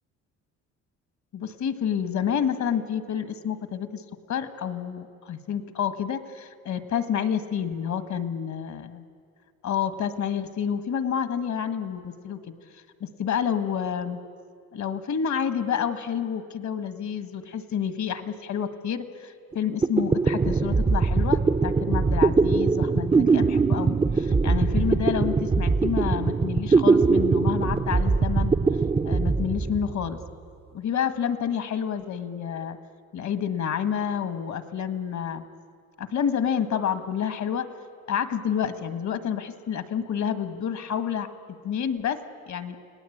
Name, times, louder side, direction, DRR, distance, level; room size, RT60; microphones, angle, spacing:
voice 1, 1.3-4.0 4.3-9.0 9.6-12.6 13.0-14.2 14.7-28.5 29.0-30.2 30.7-32.8 33.1-35.5 36.0-37.7 38.1-42.2 42.5-42.8, left 8 dB, 65° left, 10 dB, 1.7 m, -29 dB
sound 1, 19.5-19.6 19.8-30.3, right 4 dB, 20° right, 0.6 m, -22 dB
29.5 x 19.0 x 8.7 m, 2.2 s
cardioid pair, 90°, 30 cm